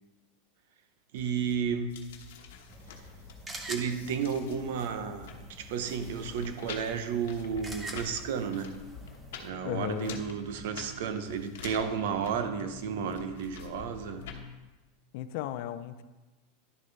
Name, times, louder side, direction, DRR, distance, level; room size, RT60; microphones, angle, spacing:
voice 1, 1.1-2.0 3.7-8.7 9.4-14.3, right 6 dB, 65° right, 0.8 m, -32 dB
sound 1, 1.2-14.4, left 5 dB, 75° left, 1.1 m, -47 dB
sound 2, 2.7-9.5, right 1 dB, 10° right, 0.8 m, -46 dB
voice 2, 9.6-10.2 15.1-16.0, left 11 dB, 50° left, 0.4 m, -35 dB
11.0 x 6.6 x 4.0 m
supercardioid pair, 170°, 0 cm